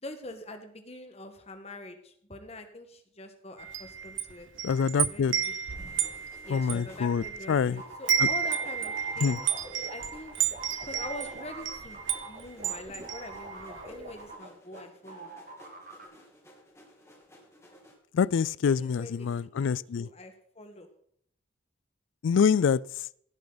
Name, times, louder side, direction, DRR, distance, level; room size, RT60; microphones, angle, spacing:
voice 1, 0.0-4.5 4.9-5.5 6.4-9.5 9.9-10.3 10.8-12.0 12.3-15.3 18.6-19.3 19.6-20.9, left 2 dB, 30° left, 1.5 m, -44 dB
Wind chime, 3.6-7.7 7.9-13.9, right 8 dB, 75° right, 1.0 m, -32 dB
voice 2, 4.6-5.3 6.5-7.8 9.2-9.4 18.1-20.1 22.2-22.8, left 6 dB, 75° left, 0.3 m, -26 dB
sound 1, 5.7-17.9, equal, 15° left, 2.8 m, -55 dB
sound 2, 7.8-14.8 15.1-16.0, right 3 dB, 45° right, 1.9 m, -44 dB
16.5 x 8.5 x 4.0 m
head